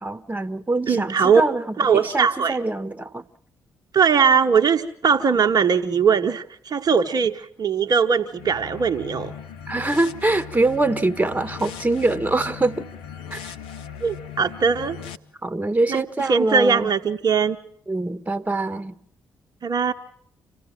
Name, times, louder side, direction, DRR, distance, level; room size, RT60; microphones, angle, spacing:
voice 1, 0.0-1.6 1.9-3.2 9.7-12.9 13.3-13.5 15.4-16.9 17.9-18.9, right 2 dB, 15° right, 1.4 m, -24 dB
voice 2, 0.9-1.4 1.8-2.6 3.9-9.3 14.0-15.0 15.9-16.0 16.3-17.6 19.6-19.9, right 6 dB, 45° right, 1.0 m, -20 dB
sound 1, 8.3-15.2, left 8 dB, 75° left, 0.8 m, -38 dB
27.0 x 16.0 x 7.7 m
hypercardioid pair, 45°, 9 cm